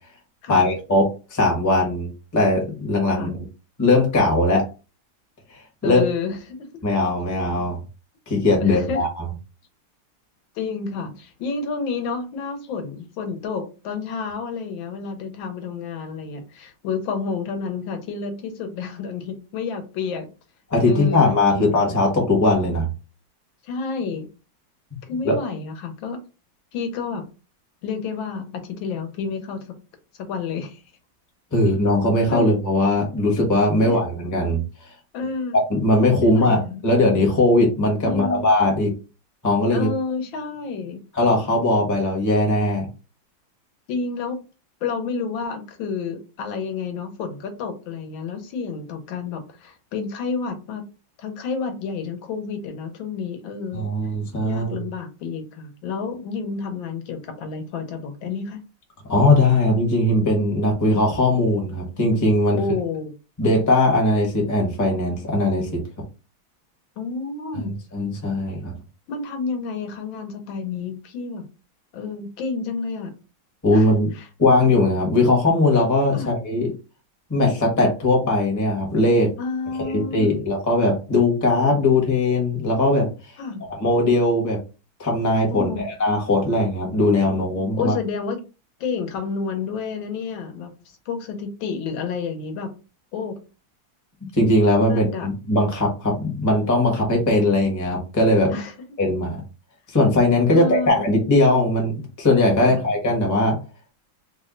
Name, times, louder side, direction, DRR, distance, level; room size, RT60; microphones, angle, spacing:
voice 1, 0.5-3.3 3.8-4.6 5.8-6.0 6.8-7.8 8.3-9.3 20.7-22.9 25.2-25.4 31.5-34.6 35.7-38.9 39.4-39.9 41.1-42.9 53.7-54.7 59.0-62.6 63.4-65.8 67.5-68.7 73.6-74.1 74.4-76.7 77.3-79.3 79.8-83.1 83.8-84.6 85.0-87.9 94.3-98.5 99.0-99.4 99.9-103.6, left 2 dB, 15° left, 0.6 m, -19 dB
voice 2, 5.8-6.7 8.6-9.0 10.5-20.3 20.8-22.1 23.6-24.3 25.1-26.2 26.7-27.3 27.8-29.7 30.3-30.8 32.3-32.5 33.7-34.0 35.1-35.6 36.2-36.8 38.0-38.5 39.7-41.0 43.9-44.4 44.8-50.8 51.2-53.9 54.4-58.6 62.5-63.1 67.0-67.8 69.1-71.5 71.9-73.1 73.7-74.3 76.1-76.3 79.4-80.4 83.4-83.7 85.5-85.8 87.7-88.4 88.8-90.7 91.1-92.7 93.1-93.4 94.8-95.3 98.5-98.7 100.5-101.1 102.6-102.8, left 5 dB, 80° left, 1.5 m, -30 dB
3.5 x 2.1 x 3.7 m
omnidirectional pair, 2.1 m